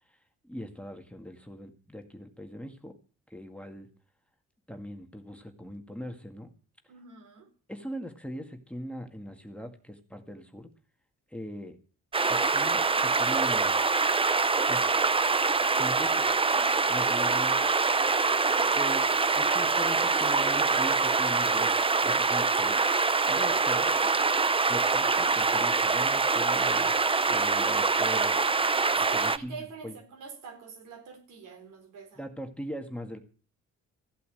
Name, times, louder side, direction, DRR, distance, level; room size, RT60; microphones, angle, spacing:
voice 1, 0.4-2.9 3.3-3.9 4.7-6.5 7.7-10.7 11.3-11.8 12.3-13.8 14.7-14.9 15.7-16.3 16.9-17.7 18.7-22.8 23.3-24.0 24.7-26.9 27.3-28.4 29.0-29.6 29.8-30.0 32.2-33.2, equal, 5° left, 5 dB, 1.9 m, -40 dB
voice 2, 6.9-7.5 18.5-18.7 23.3-24.2 29.0-32.2, right 5 dB, 85° right, 3 dB, 4.1 m, -45 dB
sound 1, 12.1-29.4, right 4 dB, 20° right, 0.6 m, -25 dB
15.0 x 8.4 x 7.8 m, 0.42 s
cardioid pair, 90°, 30 cm